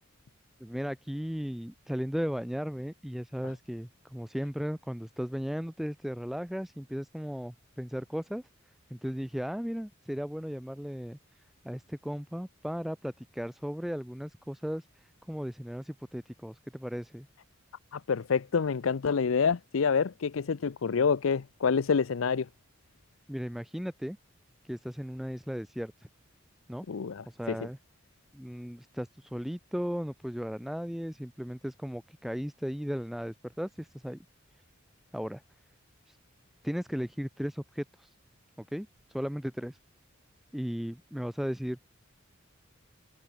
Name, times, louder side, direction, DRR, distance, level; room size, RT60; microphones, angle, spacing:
voice 1, 0.6-8.4 8.9-11.2 11.6-17.3 23.3-24.2 24.7-26.1 26.7-26.9 27.3-27.8 28.3-34.2 35.1-35.4 36.1-36.2 36.6-38.1 38.6-39.8 40.5-41.8, equal, ahead, 0.4 m, -36 dB
voice 2, 17.9-22.5 26.9-27.6, left 5 dB, 80° left, 0.5 m, -27 dB
head